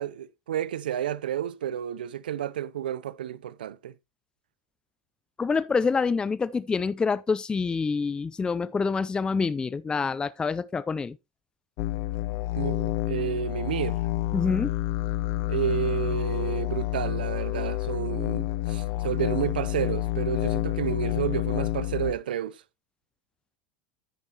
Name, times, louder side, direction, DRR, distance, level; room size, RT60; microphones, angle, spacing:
voice 1, 0.0-3.9 12.6-14.0 15.5-22.6, right 10 dB, 85° right, 0.6 m, -31 dB
voice 2, 5.4-11.2 14.3-14.7, left 5 dB, 20° left, 0.5 m, -26 dB
sound 1, 11.8-22.1, left 17 dB, 60° left, 0.9 m, -29 dB
9.8 x 9.3 x 2.9 m
hypercardioid pair, 95°, 5 cm